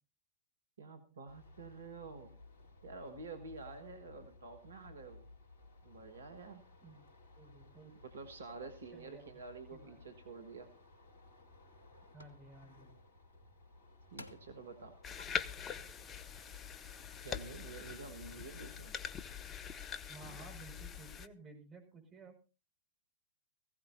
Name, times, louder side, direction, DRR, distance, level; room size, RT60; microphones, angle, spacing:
voice 1, 0.8-2.4 2.8-5.3 5.8-6.6 8.0-10.7 14.1-15.0 17.2-18.9, right 4 dB, 70° right, 7 dB, 1.4 m, -49 dB
sound 1, 1.3-18.8, left 2 dB, 50° left, 3.5 m, -59 dB
voice 2, 7.4-8.0 8.9-9.4 9.7-10.0 12.1-13.0 20.1-22.3, right 3 dB, 25° right, 1 dB, 5.5 m, -55 dB
sound 2, 10.8-10.9 11.5-11.8 12.2-12.4 13.6-13.7 14.2-14.6 15.2-15.3, left 1 dB, 80° left, 1.1 m, -52 dB
sound 3, 15.0-21.3, left 7 dB, 25° left, 0.7 m, -43 dB
19.0 x 16.0 x 2.7 m, 0.33 s
figure-of-eight pair, 100°, 0 cm